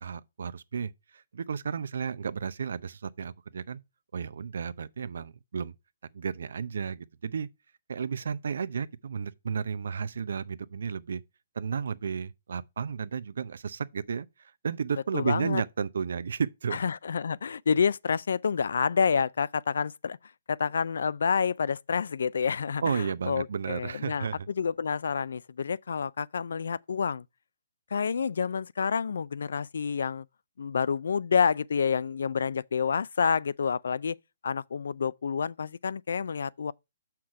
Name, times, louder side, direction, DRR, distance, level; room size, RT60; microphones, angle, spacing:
voice 1, 0.0-3.8 4.1-5.7 6.1-7.5 7.9-11.2 11.5-16.8 22.8-24.5, right 6 dB, 70° right, 0.6 m, -33 dB
voice 2, 15.1-15.6 16.7-20.2 20.5-27.2 27.9-30.3 30.6-34.2 34.4-36.7, left 6 dB, 75° left, 0.3 m, -28 dB
6.4 x 5.8 x 4.7 m
hypercardioid pair, 150°, 0 cm